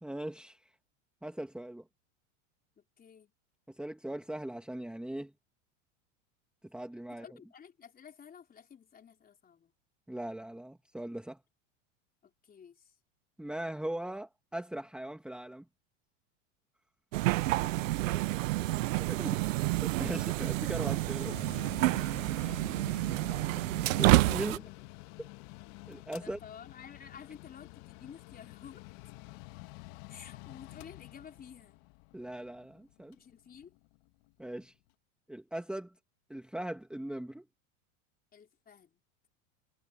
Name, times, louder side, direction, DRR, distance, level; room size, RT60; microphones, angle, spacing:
voice 1, 0.0-0.7 1.2-1.8 3.7-5.3 6.7-7.3 10.1-11.4 13.4-15.7 19.1-19.4 20.0-21.4 24.0-24.7 25.2-25.3 25.9-26.4 32.1-33.2 34.4-34.7 35.3-35.9 36.3-37.5, right 1 dB, ahead, 2.0 m, -39 dB
voice 2, 2.8-3.3 7.1-9.7 12.4-12.9 17.6-18.4 24.7-24.9 26.1-28.8 30.1-31.8 33.1-33.7 38.3-39.0, left 7 dB, 25° left, 3.9 m, -52 dB
sound 1, 17.1-24.6, right 18 dB, 90° right, 0.6 m, -29 dB
Mechanical fan, 21.3-34.6, left 23 dB, 55° left, 1.5 m, -49 dB
supercardioid pair, 120°, 38 cm